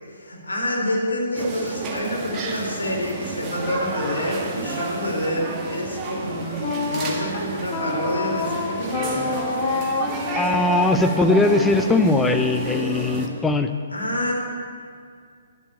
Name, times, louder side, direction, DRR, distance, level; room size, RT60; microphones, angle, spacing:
voice 1, 0.1-9.3 13.9-14.3, left 1 dB, 80° left, -2 dB, 3.6 m, -27 dB
sound 1, 1.3-13.3, right 3 dB, 20° right, 1.5 m, -31 dB
Wind instrument woodwind instrument, 6.6-13.5, left 3 dB, 35° left, 1.5 m, -29 dB
voice 2, 10.3-13.7, left 2 dB, 10° left, 6 dB, 0.7 m, -20 dB
11.0 x 7.2 x 8.7 m, 2.1 s
figure-of-eight pair, 130°, 0 cm